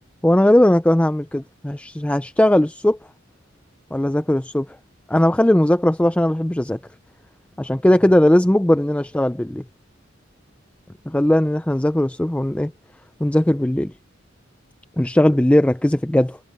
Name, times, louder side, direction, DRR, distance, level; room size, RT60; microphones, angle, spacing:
voice 1, 0.2-3.0 3.9-4.8 5.1-6.8 7.6-9.6 11.1-12.7 13.2-13.9 15.0-16.4, left 1 dB, 5° left, 0.4 m, -18 dB
head